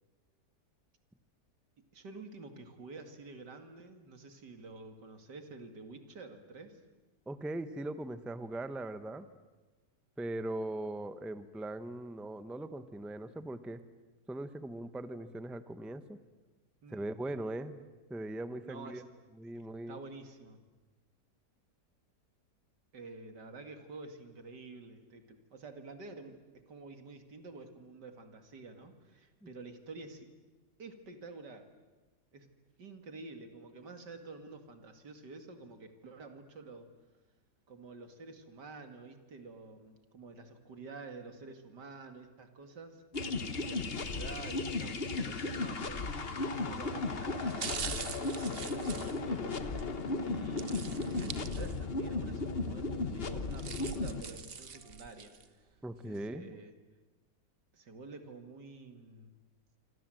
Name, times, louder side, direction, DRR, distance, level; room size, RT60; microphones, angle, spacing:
voice 1, 1.9-6.8 16.8-17.1 18.6-19.0 19.5-20.6 22.9-26.4 26.7-30.3 30.8-31.7 32.3-32.5 32.8-36.9 37.7-43.0 43.7-49.9 50.2-55.3 56.0-56.7 57.7-59.3, right 3 dB, 80° right, 7 dB, 2.8 m, -49 dB
voice 2, 7.3-9.3 10.2-13.8 14.3-16.2 16.9-17.8 18.1-19.1 19.4-20.0 29.4-29.5 55.8-56.5, right 1 dB, ahead, 11 dB, 0.7 m, -40 dB
sound 1, 43.1-54.2, left 3 dB, 35° left, 1.4 m, -35 dB
sound 2, 46.4-46.7 47.3-49.9 50.6-52.0 52.4-52.5 53.3-55.5 55.9-56.0, right 6 dB, 40° right, 1.1 m, -43 dB
26.5 x 25.5 x 7.8 m, 1.2 s
omnidirectional pair, 1.8 m